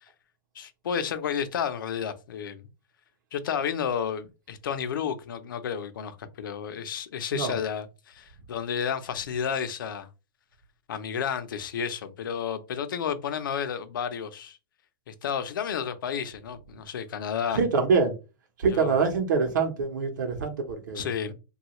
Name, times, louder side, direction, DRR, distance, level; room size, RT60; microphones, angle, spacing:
voice 1, 0.6-2.7 3.3-10.1 10.9-14.6 15.1-17.6 18.7-19.0 20.9-21.3, left 7 dB, 80° left, 0.6 m, -31 dB
voice 2, 17.5-18.1 18.6-21.3, right 5 dB, 65° right, 0.7 m, -25 dB
3.1 x 2.3 x 2.9 m
supercardioid pair, 175°, 11 cm